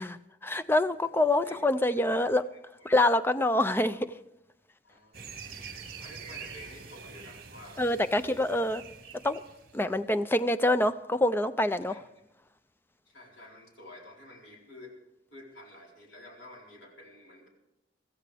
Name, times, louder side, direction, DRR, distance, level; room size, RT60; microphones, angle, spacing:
voice 1, 0.0-2.4 2.8-4.1 7.8-8.8 9.2-9.4 9.7-12.0, left 1 dB, 10° left, 12 dB, 0.5 m, -26 dB
voice 2, 2.1-2.4 2.8-3.0 4.8-5.4 6.0-8.4 11.9-12.0 13.1-14.9 15.3-17.5, left 1 dB, 75° left, -2 dB, 4.3 m, -50 dB
sound 1, 5.1-10.0, right 6 dB, 55° right, 1.7 m, -45 dB
23.0 x 15.0 x 3.4 m, 0.89 s
head